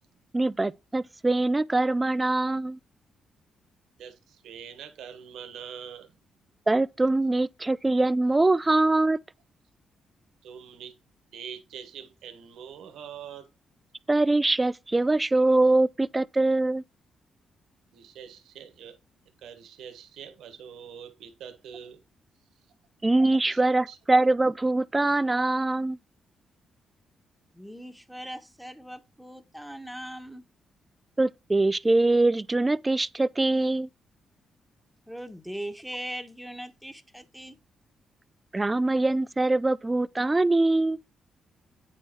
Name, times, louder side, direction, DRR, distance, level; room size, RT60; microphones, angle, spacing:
voice 1, 0.3-2.8 6.7-9.2 14.1-16.8 23.0-26.0 31.2-33.9 38.5-41.0, right 2 dB, 20° right, 0.4 m, -23 dB
voice 2, 4.0-6.2 10.4-11.0 11.3-13.5 17.9-19.0 19.4-22.0 23.5-23.6 23.9-24.0, right 8 dB, 85° right, 1.2 m, -44 dB
voice 3, 27.5-30.5 35.1-37.6, equal, ahead, 1.1 m, -40 dB
9.0 x 4.5 x 4.5 m
cardioid pair, 80°, 0 cm